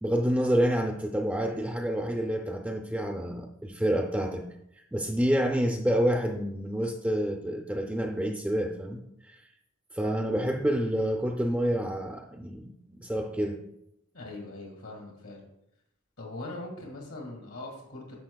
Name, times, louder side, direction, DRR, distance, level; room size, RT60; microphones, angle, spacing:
voice 1, 0.0-4.4 4.9-9.4 9.9-13.6, equal, 5° right, 2 dB, 0.4 m, -28 dB
voice 2, 14.1-15.5 16.2-18.2, left 2 dB, 80° left, -1 dB, 1.8 m, -41 dB
10.5 x 6.8 x 2.3 m, 0.80 s
head